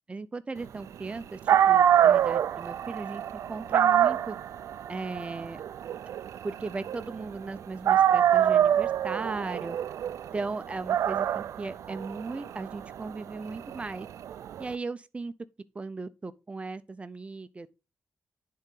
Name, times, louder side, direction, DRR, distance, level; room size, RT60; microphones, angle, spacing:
voice 1, 0.1-4.4 4.9-5.6 6.4-9.8 10.3-14.1 14.6-15.3 15.7-17.7, right 3 dB, 25° right, 0.5 m, -37 dB
Dog, 1.2-1.3 1.5-7.5 7.8-14.6, right 10 dB, 90° right, 0.3 m, -25 dB
10.5 x 3.9 x 3.7 m
wide cardioid pair, 115°, 5 cm